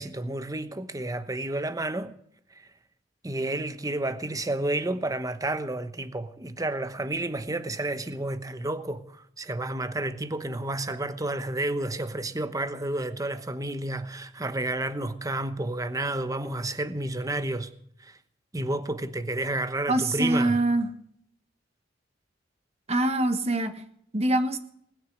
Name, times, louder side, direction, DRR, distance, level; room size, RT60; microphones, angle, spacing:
voice 1, 0.0-2.2 2.6-2.7 3.2-17.7 18.0-18.2 18.5-20.6, right 2 dB, 20° right, 1.0 m, -31 dB
voice 2, 19.9-20.9 22.9-23.8 24.1-24.6, right 1 dB, 35° right, 1.4 m, -24 dB
20.0 x 6.8 x 9.4 m
head